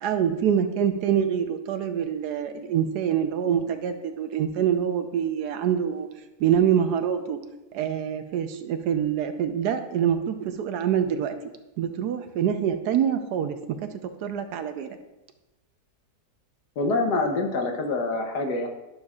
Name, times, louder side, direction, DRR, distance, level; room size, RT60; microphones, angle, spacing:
voice 1, 0.0-6.1 6.4-7.4 7.7-11.4 11.8-13.6 14.2-15.0, right 9 dB, 80° right, 8 dB, 1.2 m, -25 dB
voice 2, 16.8-18.7, left 3 dB, 80° left, 4 dB, 1.5 m, -25 dB
11.0 x 6.5 x 2.4 m, 1.0 s
omnidirectional pair, 1.7 m